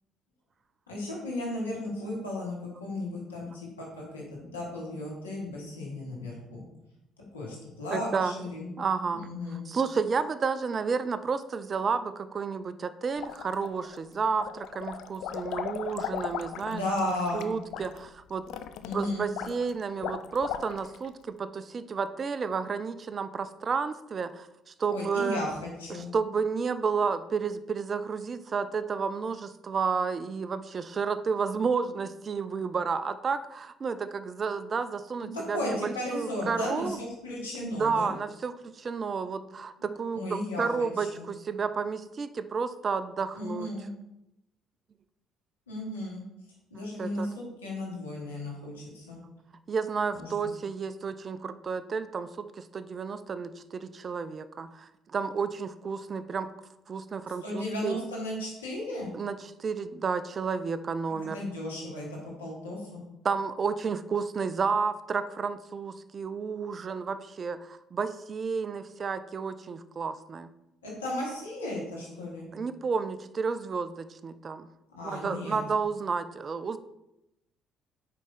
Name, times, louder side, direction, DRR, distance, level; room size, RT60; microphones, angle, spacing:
voice 1, 0.9-6.6 7.3-8.7 9.1-9.6 16.7-17.5 18.8-19.2 24.9-26.1 35.5-38.1 39.8-41.2 43.3-43.9 45.7-46.2 46.7-49.2 50.1-50.5 57.4-59.1 61.3-63.0 70.8-72.4 74.9-75.6, left 1 dB, 90° left, -4 dB, 1.4 m, -35 dB
voice 2, 7.9-8.3 8.8-9.3 9.7-18.5 18.9-25.4 25.9-37.0 37.8-43.7 46.8-47.3 49.7-56.5 56.9-58.0 59.1-61.4 63.2-70.5 72.5-74.7 75.0-76.8, right 5 dB, 40° right, 12 dB, 0.4 m, -31 dB
sound 1, 13.2-14.0 14.3-21.1, left 9 dB, 65° left, 0.4 m, -37 dB
5.2 x 4.8 x 4.0 m, 0.88 s
hypercardioid pair, 50°, 0 cm